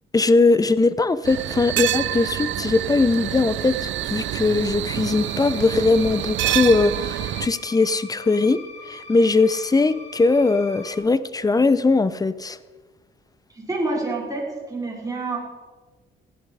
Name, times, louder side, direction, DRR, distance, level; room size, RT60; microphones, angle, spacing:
voice 1, 0.1-8.6 8.9-12.6, left 3 dB, 20° left, 16 dB, 0.7 m, -20 dB
sound 1, 1.2-7.5, right 13 dB, 70° right, 0.5 m, -27 dB
sound 2, 4.9-10.9, left 3 dB, 35° left, 3.1 m, -42 dB
voice 2, 13.5-15.4, right 2 dB, 15° right, -3 dB, 5.4 m, -27 dB
16.0 x 11.5 x 4.9 m, 1.3 s
cardioid pair, 90°, 20 cm